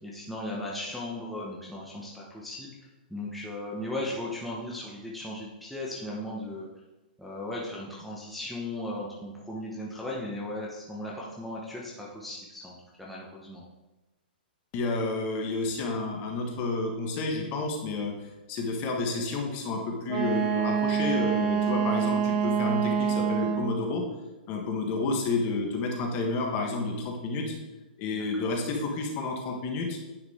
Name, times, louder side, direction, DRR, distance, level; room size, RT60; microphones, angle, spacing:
voice 1, 0.0-2.7 3.1-6.7 7.2-13.6 28.1-28.5, left 1 dB, ahead, -5 dB, 0.9 m, -37 dB
voice 2, 14.7-18.1 18.5-24.0 24.5-27.5 28.0-30.0, left 3 dB, 30° left, 2 dB, 1.3 m, -30 dB
Wind instrument woodwind instrument, 20.1-23.8, right 7 dB, 45° right, 1.3 m, -26 dB
9.8 x 4.8 x 3.6 m, 1.1 s
hypercardioid pair, 155°, 5 cm